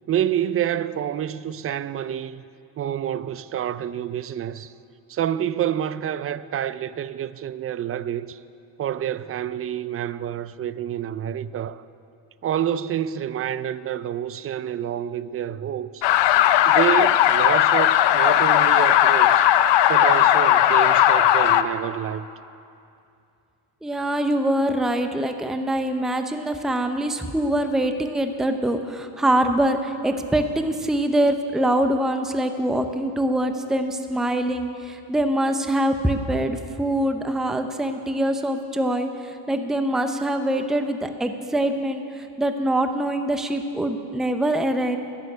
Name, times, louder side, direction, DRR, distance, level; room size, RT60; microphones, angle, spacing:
voice 1, 0.1-2.4 2.8-4.7 5.1-8.4 8.8-11.8 12.4-16.1 16.7-19.5 19.9-22.3, right 10 dB, 35° right, 0.4 m, -28 dB
sound 1, 16.0-21.6, left 11 dB, 65° left, 0.7 m, -17 dB
voice 2, 23.8-45.0, right 1 dB, ahead, 0.7 m, -24 dB
12.5 x 7.0 x 9.7 m
cardioid pair, 95°, 45 cm